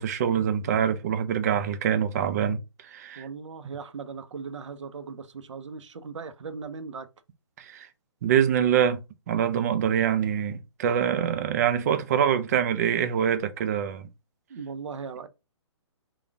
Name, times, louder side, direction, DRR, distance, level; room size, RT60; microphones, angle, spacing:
voice 1, 0.0-2.6 2.9-3.3 7.6-7.9 8.2-9.0 9.3-14.1, right 9 dB, 35° right, 0.4 m, -25 dB
voice 2, 3.2-7.1 14.5-15.3, right 5 dB, 80° right, 0.7 m, -38 dB
3.9 x 2.3 x 3.4 m
hypercardioid pair, 155°, 15 cm